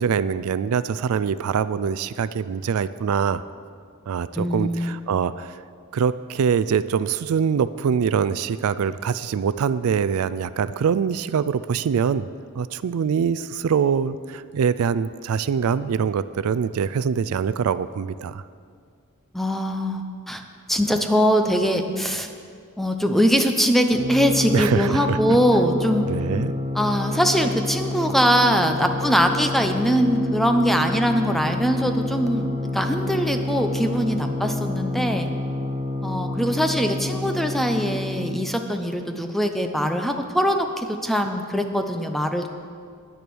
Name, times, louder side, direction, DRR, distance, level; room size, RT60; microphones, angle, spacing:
voice 1, 0.0-3.4 4.1-5.5 5.9-12.3 12.5-18.4 24.5-25.2 26.1-26.5, right 7 dB, 75° right, 15 dB, 0.4 m, -24 dB
voice 2, 4.3-4.9 19.3-20.4 20.7-22.3 22.8-26.1 26.7-35.3 36.0-42.5, equal, ahead, 5 dB, 0.7 m, -22 dB
sound 1, 23.9-38.5, left 2 dB, 25° right, 1.1 m, -28 dB
10.5 x 9.7 x 6.2 m, 2.1 s
head